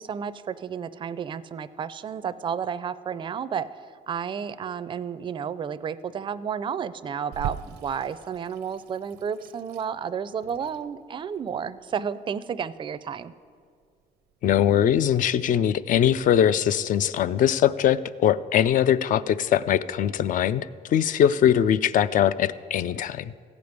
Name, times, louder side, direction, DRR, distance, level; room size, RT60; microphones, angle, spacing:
voice 1, 0.0-3.7 4.1-13.3, right 7 dB, 30° right, 14 dB, 0.4 m, -32 dB
Water tap faucet / Sink (filling or washing), 7.3-16.3, right 10 dB, 80° right, 0.5 m, -43 dB
voice 2, 14.4-23.3, left 10 dB, 50° left, 16 dB, 0.4 m, -21 dB
15.0 x 5.1 x 9.5 m, 2.1 s
cardioid pair, 110°, 17 cm